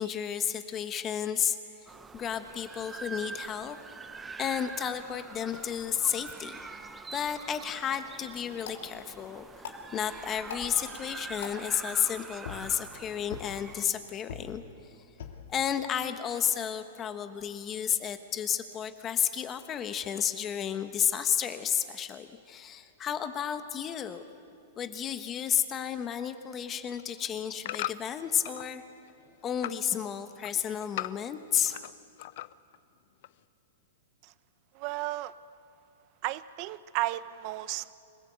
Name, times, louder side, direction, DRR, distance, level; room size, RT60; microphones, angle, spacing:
voice 1, 0.0-3.8 4.4-6.6 7.1-15.1 15.5-24.2 24.8-28.8 29.4-31.8, left 9 dB, 20° left, 9 dB, 1.2 m, -32 dB
sound 1, 1.9-13.8, right 4 dB, 10° right, 0.9 m, -45 dB
sound 2, 8.5-17.5, left 5 dB, 75° left, 2.8 m, -47 dB
sound 3, 26.9-28.7 29.1-29.9 30.2-31.9 32.2-32.8 33.2-33.3, left 15 dB, 55° left, 0.6 m, -39 dB
voice 2, 34.7-35.3 36.2-37.9, right 17 dB, 40° right, 15 dB, 0.8 m, -33 dB
26.0 x 18.0 x 8.2 m, 2.5 s
hypercardioid pair, 150°, 0 cm